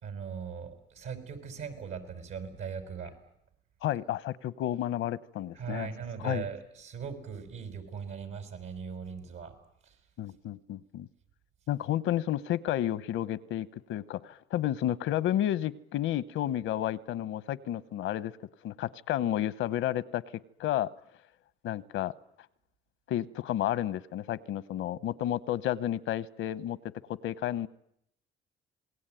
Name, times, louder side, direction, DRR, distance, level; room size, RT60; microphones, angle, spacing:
voice 1, 0.0-3.1 5.6-9.5, right 6 dB, 85° right, 7 dB, 5.7 m, -39 dB
voice 2, 3.8-5.9 6.2-6.4 10.2-11.1 11.7-18.3 18.6-20.2 20.6-20.9 21.6-22.1 23.1-26.8 27.1-27.7, left 12 dB, 85° left, 17 dB, 0.9 m, -31 dB
27.5 x 20.0 x 9.1 m, 0.76 s
cardioid pair, 90°, 20 cm